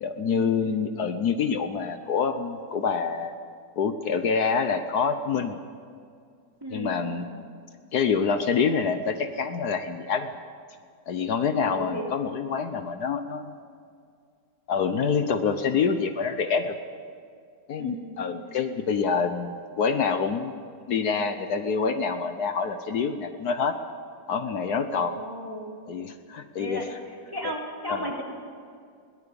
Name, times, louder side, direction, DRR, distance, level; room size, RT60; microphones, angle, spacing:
voice 1, 0.0-3.3 3.8-5.6 6.7-7.3 7.9-10.3 11.1-13.6 14.7-16.7 17.7-20.5 20.9-23.7 24.3-25.1 25.9-26.8 27.9-28.1, left 5 dB, 70° left, 8 dB, 1.4 m, -26 dB
voice 2, 6.6-7.1 11.7-12.1 17.8-18.3 24.9-25.7 26.6-26.9 27.3-28.2, right 1 dB, 15° right, -2 dB, 3.3 m, -35 dB
22.0 x 18.0 x 7.0 m, 2.2 s
omnidirectional pair, 1.8 m